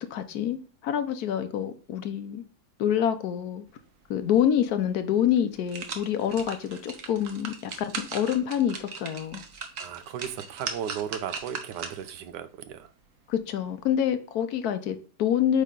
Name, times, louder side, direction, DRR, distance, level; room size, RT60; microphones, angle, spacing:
voice 1, 0.1-2.4 2.8-3.6 4.1-9.4 13.3-15.6, left 9 dB, 70° left, 1.1 m, -27 dB
sound 1, 4.8-4.9 5.4-12.2 12.7-12.8, right 5 dB, 55° right, 1.2 m, -39 dB
voice 2, 9.8-12.9, right 9 dB, 85° right, 1.3 m, -36 dB
8.4 x 3.2 x 3.7 m
omnidirectional pair, 1.8 m